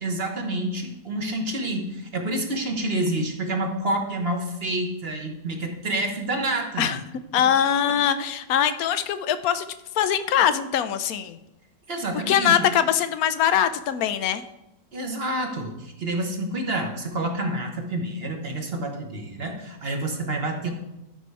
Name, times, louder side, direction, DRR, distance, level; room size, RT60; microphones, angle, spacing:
voice 1, 0.0-7.0 11.9-12.6 14.9-20.7, right 1 dB, 40° right, 2 dB, 1.3 m, -28 dB
voice 2, 7.3-9.7 9.9-11.4 12.1-14.5, left 9 dB, 70° left, 12 dB, 1.0 m, -22 dB
12.5 x 5.6 x 4.7 m, 0.93 s
omnidirectional pair, 1.8 m